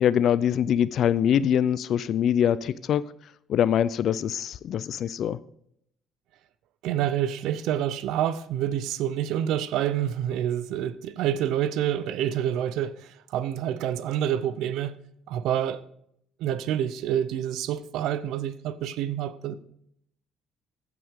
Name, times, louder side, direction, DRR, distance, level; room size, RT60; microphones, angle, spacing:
voice 1, 0.0-3.1 3.5-5.4, left 9 dB, 55° left, 0.4 m, -23 dB
voice 2, 6.8-14.9 15.3-15.8 16.4-19.5, right 10 dB, 80° right, 0.6 m, -27 dB
15.5 x 6.0 x 3.6 m
cardioid pair, 120°, 0 cm